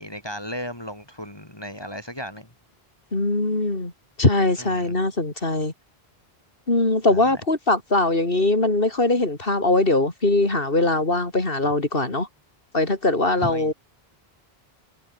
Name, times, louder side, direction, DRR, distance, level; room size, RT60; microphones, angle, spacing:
voice 1, 0.0-2.5 4.6-4.9 7.1-7.4 13.4-13.7, equal, 25° left, 4.1 m, -35 dB
voice 2, 3.1-3.9 4.2-5.7 6.7-12.3 12.7-13.7, left 2 dB, 60° left, 3.9 m, -21 dB
omnidirectional pair, 1.0 m